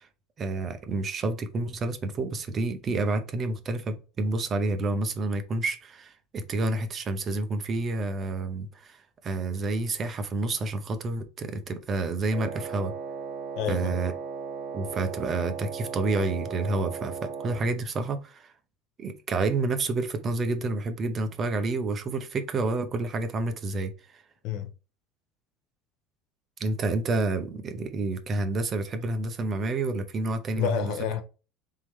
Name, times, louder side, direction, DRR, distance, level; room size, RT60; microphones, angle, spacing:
voice 1, 0.4-9.0 9.2-12.9 13.7-14.1 14.7-18.5 19.0-23.9 26.6-30.9, right 3 dB, 25° right, 0.6 m, -29 dB
Wind instrument woodwind instrument, 12.3-17.7, right 5 dB, 45° right, 1.3 m, -36 dB
voice 2, 13.6-13.9 24.4-24.7 30.6-31.2, left 9 dB, 55° left, 0.8 m, -29 dB
4.1 x 3.7 x 3.1 m
cardioid pair, 165°, 0 cm